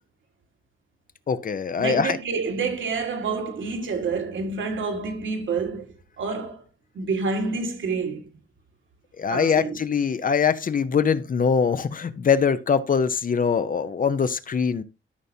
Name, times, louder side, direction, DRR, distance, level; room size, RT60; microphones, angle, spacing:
voice 1, 1.3-2.2 9.2-14.8, left 6 dB, 40° left, 0.6 m, -23 dB
voice 2, 1.8-6.6 7.0-8.3 9.3-9.8, right 4 dB, 70° right, 1.6 m, -28 dB
13.0 x 5.6 x 2.7 m
wide cardioid pair, 130°, 21 cm